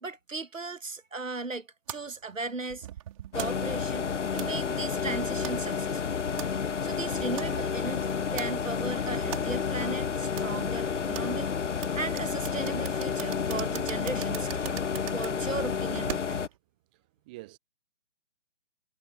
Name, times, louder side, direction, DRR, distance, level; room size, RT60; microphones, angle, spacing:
voice 1, 0.0-2.9 3.3-6.2 6.8-11.5 12.0-16.4, right 3 dB, 65° right, 1.8 m, -37 dB
sound 1, 1.9-16.6, right 12 dB, 25° right, 4.6 m, -44 dB
sound 2, 3.3-16.5, left 6 dB, 60° left, 0.7 m, -30 dB
voice 2, 16.9-17.6, right 20 dB, 5° right, 1.0 m, -48 dB
figure-of-eight pair, 150°, 42 cm